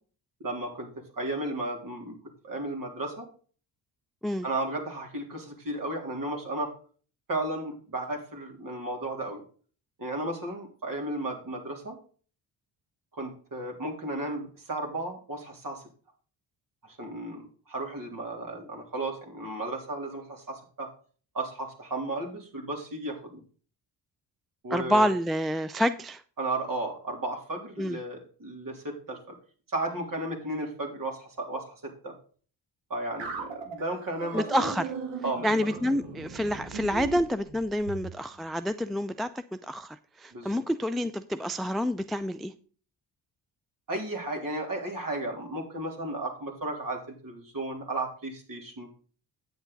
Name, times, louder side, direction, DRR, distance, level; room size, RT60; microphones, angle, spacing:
voice 1, 0.4-0.9 1.2-2.1 2.4-3.3 4.4-6.7 7.3-9.4 10.0-12.0 13.1-15.8 16.8-20.9 21.3-23.4 24.6-25.1 26.4-29.3 29.7-32.1 32.9-34.7 35.2-35.5 40.3-40.6 43.9-48.9, right 2 dB, 50° right, 3.4 m, -34 dB
voice 2, 24.7-26.2 27.8-28.0 34.3-34.9 35.4-42.5, equal, ahead, 0.4 m, -28 dB
sound 1, 33.2-38.1, right 5 dB, 80° right, 2.0 m, -38 dB
9.4 x 8.0 x 4.0 m
cardioid pair, 70°, 43 cm